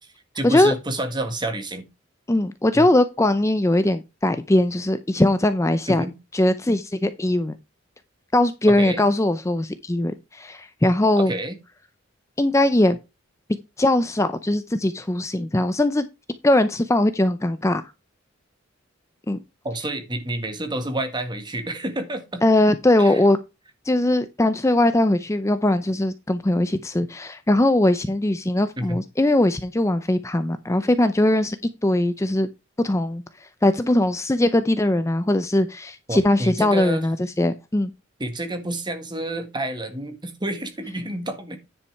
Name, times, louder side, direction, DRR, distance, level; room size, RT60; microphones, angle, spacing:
voice 1, 0.0-1.9 2.7-2.9 5.9-6.1 8.8-9.0 11.2-11.5 19.6-22.4 23.0-23.2 28.8-29.0 36.1-37.1 38.2-41.6, right 1 dB, 20° right, 1.6 m, -29 dB
voice 2, 2.3-6.1 6.3-7.6 8.3-11.3 12.4-13.0 13.8-16.1 16.4-17.8 19.3-19.4 22.4-23.4 23.8-32.5 32.8-37.9, left 1 dB, 15° left, 0.5 m, -20 dB
10.0 x 5.5 x 4.6 m
head